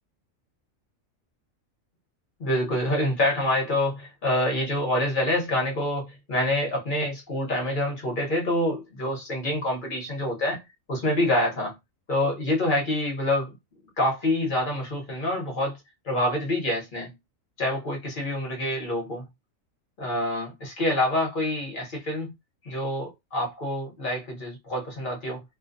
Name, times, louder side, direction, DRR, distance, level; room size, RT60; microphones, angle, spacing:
voice 1, 2.4-10.6 10.9-11.7 12.1-13.5 14.0-15.8 16.0-17.1 17.6-19.2 20.0-22.3 22.6-25.4, left 1 dB, 40° left, 1.0 m, -26 dB
2.5 x 2.2 x 2.5 m
omnidirectional pair, 1.4 m